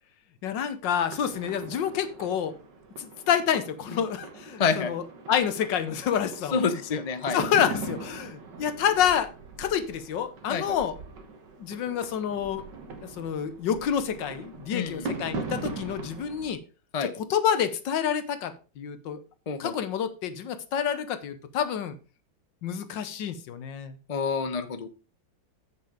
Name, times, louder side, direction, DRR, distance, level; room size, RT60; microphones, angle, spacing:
voice 1, 0.4-2.5 3.0-6.6 7.3-9.3 9.6-10.9 11.6-12.6 13.0-16.6 17.0-19.2 19.6-21.9 22.6-24.0, left 8 dB, 75° left, 12 dB, 1.6 m, -28 dB
sound 1, 1.1-16.5, right 4 dB, 65° right, 2.0 m, -40 dB
voice 2, 4.6-4.9 6.5-7.4 10.5-10.8 14.7-15.1 16.9-17.1 19.5-19.7 24.1-24.9, left 5 dB, 45° left, 10 dB, 0.5 m, -28 dB
7.9 x 6.9 x 4.9 m, 0.33 s
omnidirectional pair, 2.1 m